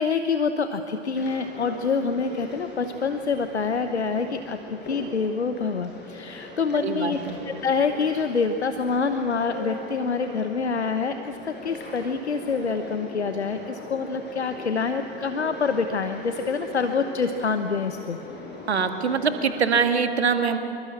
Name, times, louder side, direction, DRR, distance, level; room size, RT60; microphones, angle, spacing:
voice 1, 0.0-7.2 7.4-18.2 19.0-19.1, left 5 dB, 80° left, 8 dB, 1.1 m, -26 dB
sound 1, 1.1-19.9, left 2 dB, 30° left, 7.9 m, -40 dB
voice 2, 6.8-7.4 18.7-20.6, right 5 dB, 75° right, 7 dB, 1.9 m, -23 dB
25.5 x 24.0 x 8.5 m, 2.7 s
figure-of-eight pair, 80°, 33 cm